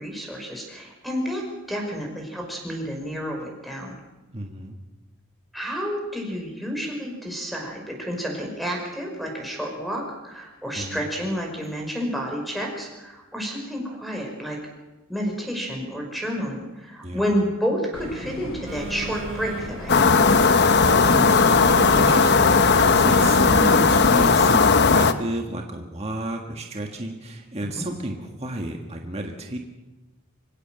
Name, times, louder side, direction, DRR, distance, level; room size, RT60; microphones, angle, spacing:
voice 1, 0.0-1.4 1.7-4.0 5.5-14.6 15.1-20.2 27.7-27.8, equal, ahead, 1 dB, 5.3 m, -30 dB
voice 2, 4.3-4.8 10.8-11.0 17.0-17.2 20.5-29.6, right 1 dB, 30° right, 2 dB, 1.7 m, -32 dB
sound 1, 17.9-23.3, equal, 85° left, 5.5 m, -37 dB
Telephone, 18.7-24.2, right 3 dB, 60° right, 2.2 m, -36 dB
sound 2, 19.9-25.1, left 4 dB, 50° left, 1.0 m, -17 dB
26.0 x 16.0 x 7.7 m, 1.1 s
head